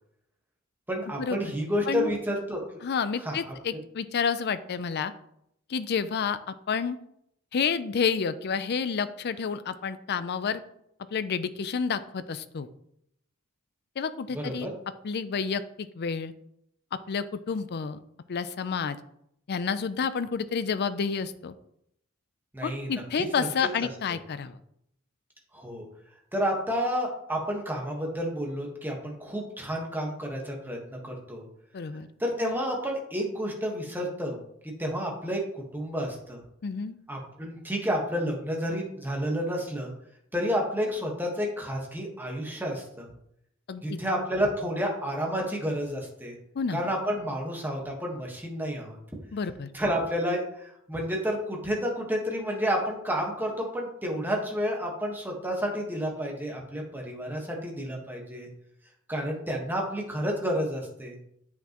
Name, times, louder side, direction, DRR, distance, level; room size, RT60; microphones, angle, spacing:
voice 1, 0.9-2.6 3.2-3.8 14.3-14.8 22.5-23.5 25.5-25.9 26.3-31.4 32.2-36.4 37.1-39.9 40.3-43.1 43.8-46.3 46.7-49.0 49.7-58.5 59.1-61.1, equal, 10° right, 0 dB, 1.3 m, -30 dB
voice 2, 2.8-5.1 5.7-7.0 7.5-10.6 11.1-12.7 14.0-14.7 15.0-16.3 16.9-18.0 18.3-19.0 19.5-21.5 22.6-24.6 31.7-32.1 36.6-37.0 43.7-44.0 46.6-46.8 49.3-49.7, left 6 dB, 50° left, 13 dB, 0.5 m, -29 dB
8.4 x 5.7 x 3.0 m, 0.75 s
head